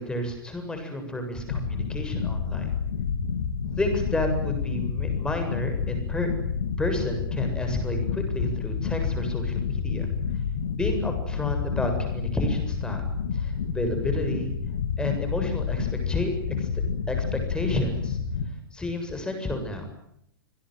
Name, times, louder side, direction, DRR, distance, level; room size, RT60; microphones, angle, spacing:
voice 1, 0.0-2.7 3.8-6.3 6.8-10.1 10.8-13.0 13.3-14.5 15.0-16.3 16.6-16.7 17.1-18.2 18.7-19.9, left 1 dB, 5° left, 5 dB, 7.5 m, -30 dB
sound 1, 1.5-18.4, left 6 dB, 60° left, 3.0 m, -29 dB
27.5 x 21.5 x 9.4 m, 0.75 s
figure-of-eight pair, 105°, 12 cm